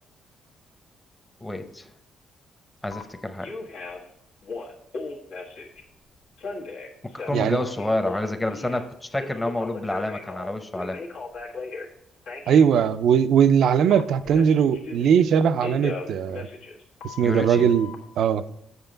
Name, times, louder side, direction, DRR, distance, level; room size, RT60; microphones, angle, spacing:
voice 1, 1.4-1.9 2.8-3.5 7.1-11.0 17.2-17.7, left 1 dB, 15° left, 7 dB, 0.8 m, -29 dB
Telephone, 2.9-3.0 3.4-4.1 4.4-5.8 6.4-8.9 9.2-11.9 12.3-12.6 13.9-15.3 15.6-18.0, left 3 dB, 85° left, 1.6 m, -37 dB
voice 2, 12.5-16.5 17.0-17.9 18.2-18.4, right 7 dB, 70° right, 12 dB, 0.4 m, -20 dB
8.1 x 6.5 x 3.9 m, 0.81 s
cardioid pair, 90°, 0 cm